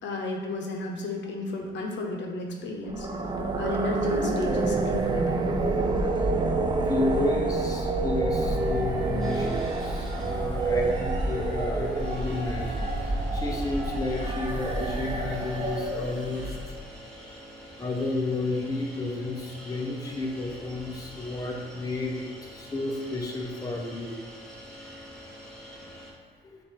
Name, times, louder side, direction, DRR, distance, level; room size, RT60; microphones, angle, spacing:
voice 1, 0.0-3.2 3.6-5.9, left 2 dB, 65° left, 1 dB, 0.8 m, -33 dB
sound 1, 2.8-17.0, right 2 dB, 20° right, 0.4 m, -28 dB
voice 2, 6.9-16.6 17.8-24.1 26.4-26.6, left 2 dB, 20° left, 0 dB, 0.6 m, -31 dB
sound 2, 8.5-16.6, right 3 dB, 65° right, 0.8 m, -45 dB
sound 3, 9.2-26.1, equal, ahead, 1.2 m, -46 dB
6.4 x 2.6 x 3.2 m, 1.4 s
cardioid pair, 90°, 20 cm